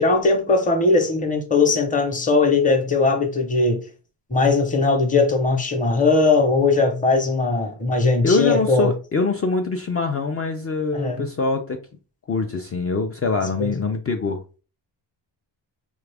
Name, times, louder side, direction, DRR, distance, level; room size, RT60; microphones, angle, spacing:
voice 1, 0.0-3.8 4.3-8.9 10.9-11.2 13.6-13.7, left 3 dB, 15° left, 0.8 m, -19 dB
voice 2, 8.2-11.8 12.3-14.4, left 3 dB, 35° left, 0.4 m, -23 dB
4.1 x 2.3 x 3.3 m
cardioid pair, 125°, 46 cm